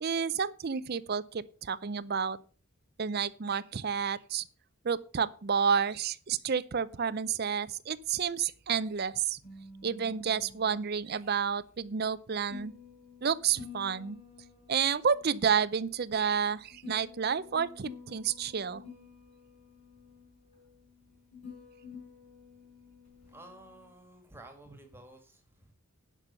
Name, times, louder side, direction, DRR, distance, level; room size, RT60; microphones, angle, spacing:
voice 1, 0.0-2.4 3.0-4.4 4.8-9.4 9.8-12.7 13.2-14.2 14.7-18.8, right 7 dB, 45° right, 0.5 m, -30 dB
sound 1, 7.8-23.9, left 5 dB, 30° left, 5.1 m, -51 dB
voice 2, 23.2-25.7, right 1 dB, 10° right, 1.9 m, -52 dB
10.5 x 6.2 x 6.7 m
head